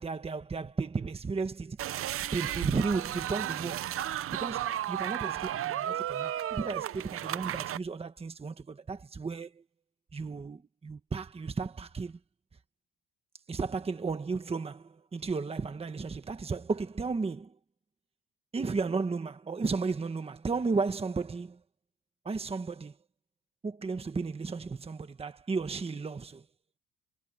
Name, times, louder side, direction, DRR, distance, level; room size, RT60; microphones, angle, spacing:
voice 1, 0.0-1.8 2.3-3.9 4.3-9.6 10.1-12.2 13.5-17.5 18.5-21.6 22.2-22.9 23.6-26.4, right 4 dB, 15° right, 1.3 m, -34 dB
sound 1, 1.8-7.8, right 11 dB, 40° right, 0.5 m, -34 dB
cardioid pair, 170°, 34 cm